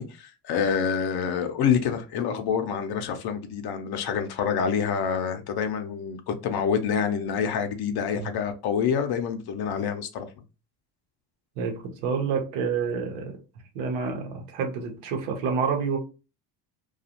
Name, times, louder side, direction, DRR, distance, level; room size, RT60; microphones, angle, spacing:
voice 1, 0.0-10.3, left 7 dB, 60° left, 0.7 m, -27 dB
voice 2, 11.6-13.4 13.7-16.0, right 5 dB, 85° right, 0.9 m, -28 dB
2.4 x 2.4 x 2.7 m
supercardioid pair, 80°, 45 cm